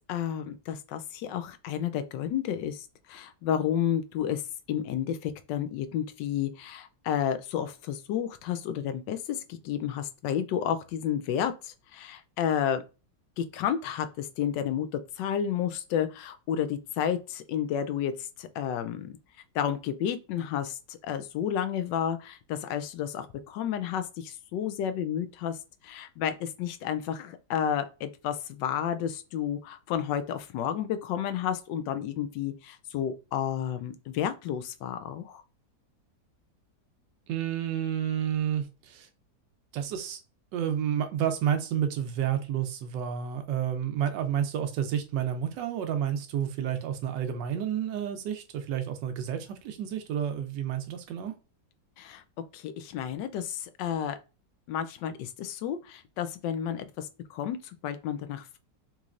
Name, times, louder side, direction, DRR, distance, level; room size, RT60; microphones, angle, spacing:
voice 1, 0.1-4.4 4.7-12.8 13.4-19.1 19.5-25.6 25.8-35.4 52.0-52.2 52.5-54.2 54.7-58.6, left 9 dB, 90° left, 1.3 m, -31 dB
voice 2, 37.3-39.1 39.7-40.2 40.5-51.3, right 9 dB, 90° right, 1.3 m, -30 dB
4.0 x 3.0 x 2.4 m
omnidirectional pair, 1.9 m